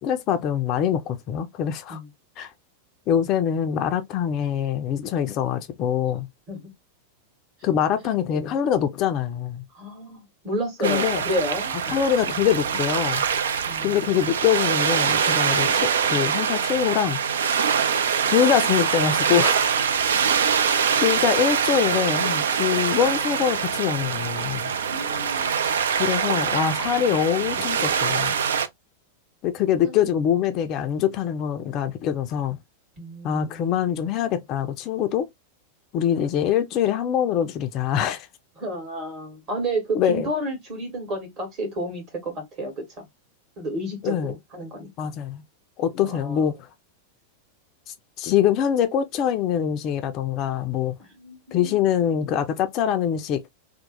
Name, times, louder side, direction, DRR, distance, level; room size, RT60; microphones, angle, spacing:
voice 1, 0.0-2.0 2.4-2.5 3.1-6.3 7.6-9.6 10.8-11.2 11.9-13.2 13.8-17.2 18.2-19.7 21.0-24.7 26.0-28.4 29.4-32.6 33.2-35.3 35.9-38.3 39.9-40.3 44.0-44.3 45.0-45.4 45.8-46.7 47.9-50.9 51.5-53.4, left 9 dB, 35° left, 0.4 m, -24 dB
voice 2, 8.0-8.5 9.7-12.0 13.7-14.0 24.9-25.6 29.8-30.0 33.0-33.6 38.6-43.0 43.6-45.2 46.0-46.4 51.2-51.8, right 1 dB, 35° right, 1.5 m, -31 dB
sound 1, 10.8-28.7, right 7 dB, 65° right, 0.3 m, -24 dB
2.8 x 2.0 x 2.9 m
figure-of-eight pair, 90°, 0 cm